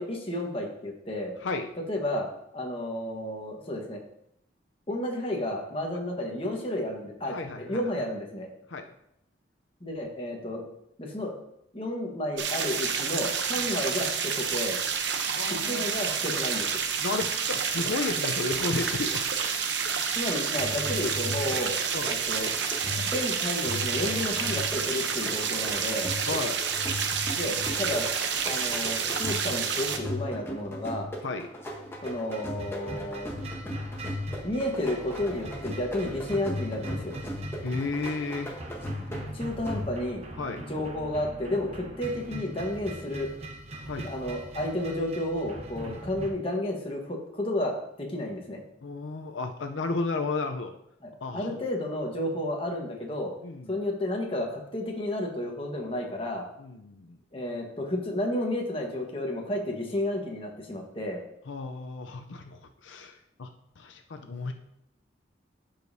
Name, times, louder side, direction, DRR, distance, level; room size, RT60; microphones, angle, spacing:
voice 1, 0.0-1.3 1.9-2.3 2.5-4.0 4.9-8.5 9.8-10.6 11.0-11.3 11.7-14.8 15.7-16.7 20.1-21.7 22.0-22.5 23.0-26.1 27.4-28.1 28.4-31.1 32.0-33.3 34.4-37.2 39.3-40.2 40.6-43.3 44.0-48.6 51.0-53.3 53.7-56.5 57.3-61.2, left 1 dB, 30° left, 0 dB, 1.2 m, -32 dB
voice 2, 7.2-7.8 8.7-8.8 13.5-13.7 15.4-15.9 17.0-19.2 21.9-22.1 26.3-26.6 27.6-27.9 31.2-31.5 37.6-38.5 40.4-40.6 43.7-44.1 45.8-46.0 48.8-50.7 51.2-51.6 53.4-53.8 56.6-57.2 61.5-63.5 63.8-64.5, left 3 dB, 90° left, 6 dB, 0.6 m, -33 dB
sound 1, 12.4-30.0, right 6 dB, 70° right, 0.8 m, -29 dB
sound 2, 20.6-40.2, left 1 dB, 15° left, 1.0 m, -37 dB
sound 3, 32.0-46.3, right 1 dB, 35° right, 0.9 m, -41 dB
12.5 x 5.1 x 2.7 m, 0.77 s
head